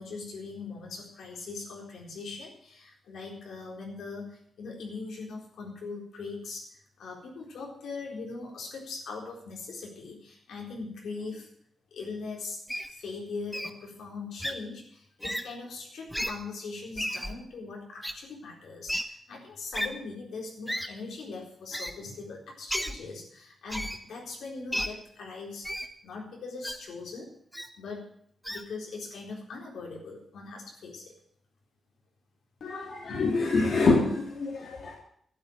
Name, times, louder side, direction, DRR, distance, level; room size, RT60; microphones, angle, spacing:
voice 1, 0.0-6.7 7.0-11.5 11.9-12.6 12.9-25.7 26.0-27.3 27.8-28.1 28.5-31.1, left 4 dB, 85° left, -1 dB, 4.1 m, -40 dB
Wild animals, 12.7-12.9 13.5-13.7 14.4-14.5 15.2-15.4 16.1-16.3 17.0-17.3 18.0-18.1 18.9-19.0 19.7-19.9 20.7-20.9 21.7-21.9 22.7-22.9 23.7-24.0 24.7-24.9 25.6-25.9 26.6-26.8 27.5-27.7 28.4-28.6, equal, ahead, 1.1 m, -32 dB
voice 2, 32.6-35.0, left 3 dB, 65° left, -1 dB, 2.9 m, -26 dB
12.0 x 8.6 x 8.8 m, 0.64 s
wide cardioid pair, 120°, 0 cm